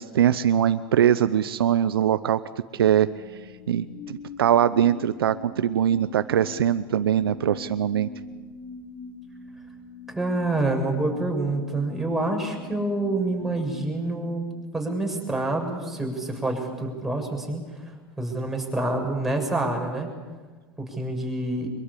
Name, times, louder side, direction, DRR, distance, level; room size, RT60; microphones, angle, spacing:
voice 1, 0.0-2.4 2.7-3.1 3.7-8.1, right 10 dB, 85° right, 12 dB, 0.8 m, -22 dB
sound 1, 2.8-15.0, left 5 dB, 60° left, 5.1 m, -43 dB
voice 2, 10.1-14.4 14.7-17.6 18.2-20.1 20.8-21.7, right 2 dB, 5° right, 0 dB, 7.0 m, -27 dB
24.5 x 22.5 x 8.5 m, 1.4 s
hypercardioid pair, 105°, 12 cm